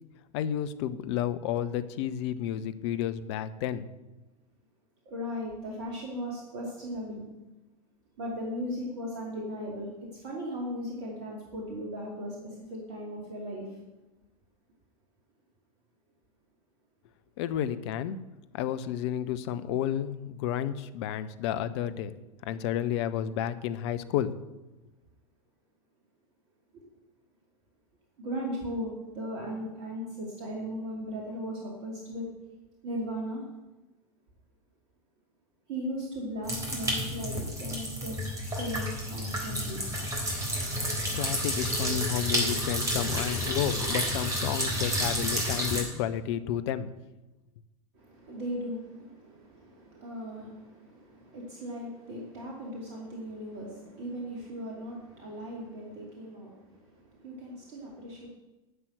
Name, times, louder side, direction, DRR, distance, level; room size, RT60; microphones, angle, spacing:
voice 1, 0.3-3.9 17.4-18.2 18.5-22.1 22.4-24.3 41.1-46.9, left 10 dB, 50° left, 12 dB, 0.8 m, -31 dB
voice 2, 5.0-7.2 8.2-13.7 26.7-26.8 28.2-32.3 32.8-33.4 35.7-39.8 47.9-58.3, equal, 50° right, -2 dB, 2.7 m, -37 dB
sound 1, 36.4-45.8, equal, 15° right, 3.8 m, -30 dB
11.0 x 6.1 x 7.8 m, 1.1 s
figure-of-eight pair, 85°, 18 cm